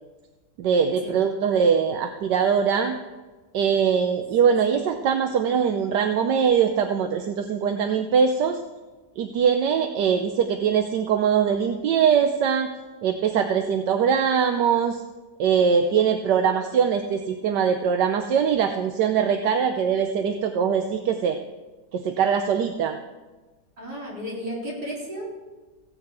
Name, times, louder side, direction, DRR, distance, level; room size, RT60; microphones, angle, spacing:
voice 1, 0.6-3.0 3.5-8.6 9.2-12.7 13.0-15.0 15.4-21.4 21.9-23.0, right 7 dB, 80° right, 6 dB, 1.4 m, -22 dB
voice 2, 23.8-25.2, equal, 60° right, -6 dB, 5.1 m, -33 dB
16.0 x 6.0 x 8.1 m, 1.2 s
omnidirectional pair, 1.9 m